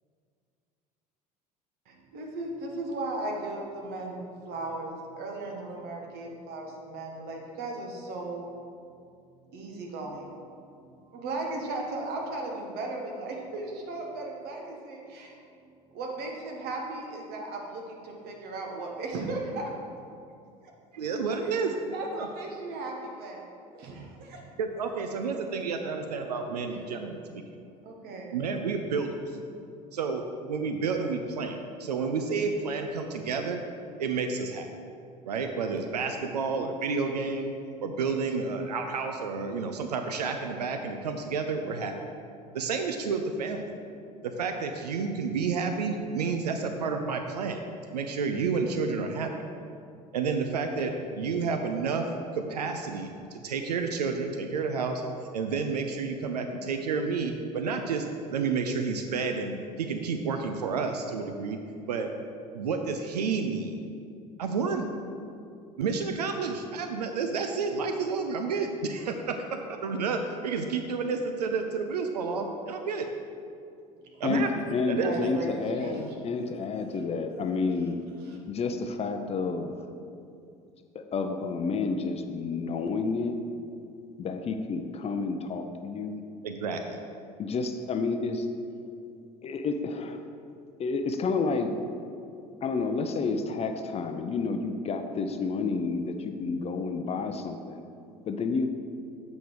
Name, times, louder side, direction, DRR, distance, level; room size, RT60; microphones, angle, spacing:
voice 1, 1.8-8.5 9.5-15.6 15.9-19.7 21.3-21.6 21.9-23.5 23.7-24.4 27.8-28.3 74.0-74.4 75.0-76.2 78.2-78.4, right 2 dB, 50° right, 0 dB, 1.5 m, -36 dB
voice 2, 20.9-21.7 22.1-22.3 24.6-27.2 28.3-29.2 29.9-33.6 34.0-34.7 35.2-37.5 37.8-41.9 42.5-43.6 44.2-47.6 47.9-49.3 50.1-52.1 52.3-55.0 55.3-61.6 61.9-62.1 62.5-63.7 64.4-64.9 65.8-69.4 69.7-73.1 74.2-74.5 74.9-75.6 86.4-87.0, right 4 dB, 75° right, 5 dB, 0.5 m, -30 dB
voice 3, 74.2-78.0 78.5-79.7 80.9-83.4 84.2-86.2 87.4-88.5 89.4-90.2 90.8-91.7 92.6-97.8 98.3-98.7, left 4 dB, 30° left, 6 dB, 0.6 m, -30 dB
8.0 x 5.2 x 4.8 m, 2.5 s
figure-of-eight pair, 65°, 21 cm